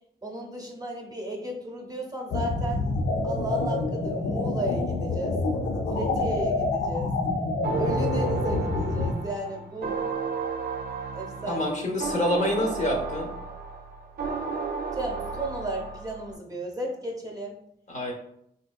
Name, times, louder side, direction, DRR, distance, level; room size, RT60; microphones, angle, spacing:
voice 1, 0.2-2.9 3.2-5.4 6.0-7.1 7.7-10.0 11.1-11.6 14.9-17.6, right 1 dB, 20° right, 0 dB, 0.6 m, -34 dB
sound 1, 2.3-9.1, left 2 dB, 85° left, 0.6 m, -27 dB
sound 2, 7.6-16.4, right 5 dB, 65° right, 0.4 m, -33 dB
voice 2, 11.5-13.3 17.9-18.1, left 1 dB, 45° left, 0 dB, 0.7 m, -27 dB
4.0 x 2.6 x 2.3 m, 0.74 s
wide cardioid pair, 105°, 17 cm